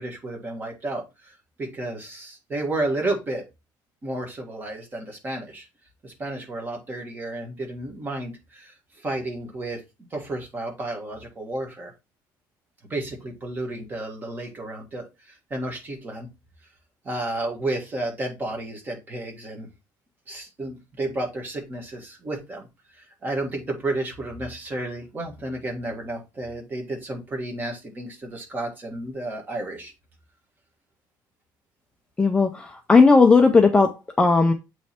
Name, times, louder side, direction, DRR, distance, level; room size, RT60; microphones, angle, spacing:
voice 1, 0.0-3.4 4.0-5.7 6.0-9.8 10.1-11.9 12.9-16.3 17.0-19.7 20.3-22.7 23.0-29.9, right 2 dB, 20° right, 1.6 m, -32 dB
voice 2, 32.2-34.5, left 4 dB, 10° left, 0.5 m, -16 dB
7.7 x 3.2 x 4.2 m
cardioid pair, 170°, 8 cm